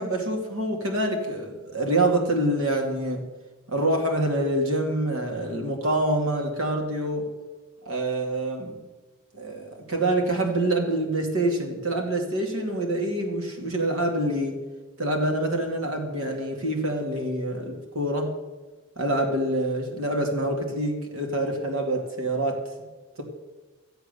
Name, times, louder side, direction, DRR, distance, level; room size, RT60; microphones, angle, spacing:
voice 1, 0.0-3.2 3.7-7.3 7.8-8.8 9.3-14.6 15.0-18.3 19.0-22.6 23.2-23.3, right 1 dB, 85° right, 2 dB, 2.5 m, -26 dB
13.5 x 7.9 x 6.9 m, 1.2 s
head